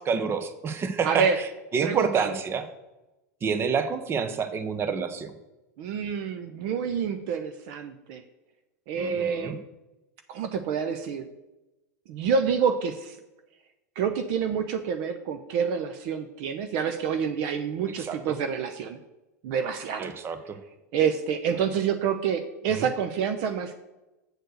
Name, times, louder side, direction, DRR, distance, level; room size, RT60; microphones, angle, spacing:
voice 1, 0.0-1.5 1.7-2.6 3.4-5.3 8.9-9.6 18.0-18.4 20.0-20.6 22.7-22.9, right 6 dB, 25° right, 10 dB, 0.8 m, -28 dB
voice 2, 1.0-1.4 1.8-2.3 5.8-8.2 8.9-9.6 10.3-11.2 12.1-13.2 14.0-19.0 19.4-20.1 20.9-23.8, right 7 dB, 50° right, 8 dB, 0.7 m, -27 dB
8.0 x 4.4 x 6.4 m, 1.0 s
hypercardioid pair, 95°, 9 cm